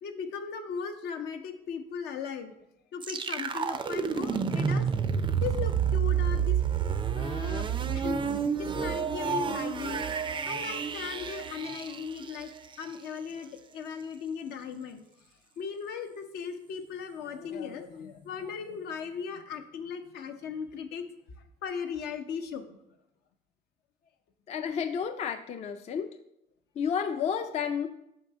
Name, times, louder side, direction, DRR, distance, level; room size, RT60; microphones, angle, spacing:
voice 1, 0.0-2.5 2.9-4.9 5.4-6.6 7.1-8.3 8.6-10.0 10.5-12.5 12.8-15.0 15.6-21.1 21.6-22.8, left 6 dB, 75° left, 6 dB, 0.7 m, -37 dB
sound 1, 3.0-12.8, right 7 dB, 30° right, 0.4 m, -29 dB
voice 2, 24.5-26.1 26.8-27.9, left 7 dB, 40° left, 6 dB, 0.4 m, -31 dB
5.4 x 3.8 x 5.6 m, 0.81 s
cardioid pair, 110°, 17 cm